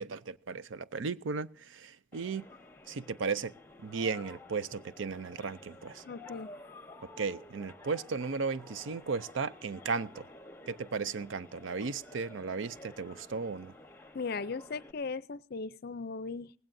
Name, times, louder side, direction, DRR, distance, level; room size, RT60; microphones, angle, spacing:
voice 1, 0.0-2.5 2.9-3.5 3.8-6.0 7.2-10.3 10.7-13.7, right 4 dB, 70° right, 0.5 m, -35 dB
sound 1, 2.1-14.9, left 2 dB, 10° left, 1.0 m, -52 dB
voice 2, 6.1-6.5 14.1-16.5, left 4 dB, 50° left, 0.5 m, -38 dB
18.5 x 16.5 x 2.6 m
head